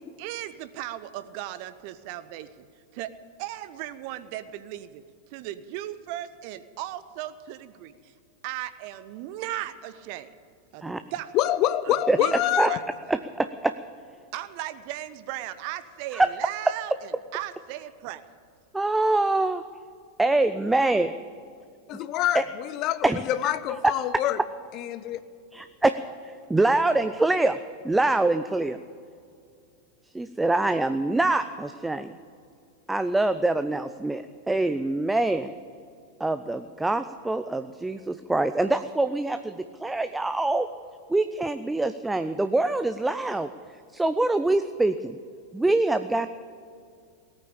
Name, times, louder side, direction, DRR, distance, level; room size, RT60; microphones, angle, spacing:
voice 1, 0.2-2.7 2.9-3.1 3.4-5.0 5.3-8.1 8.4-10.3 10.7-11.3 11.8-12.8 14.3-18.2, right 13 dB, 45° right, 0.8 m, -37 dB
voice 2, 11.3-12.8 21.9-24.4 24.7-25.2, left 12 dB, 40° left, 0.6 m, -26 dB
voice 3, 12.1-12.7 13.1-13.7 16.1-16.3 18.7-19.6 20.2-21.1 21.9-22.0 22.3-22.4 23.0-23.2 23.7-23.8 25.5-26.0 26.2-27.6 27.8-28.8 30.1-32.1 32.9-35.5 36.2-40.7 41.1-43.5 43.9-45.2 45.5-46.3, right 2 dB, 5° right, 0.5 m, -24 dB
18.0 x 9.1 x 8.8 m
figure-of-eight pair, 90°, 0 cm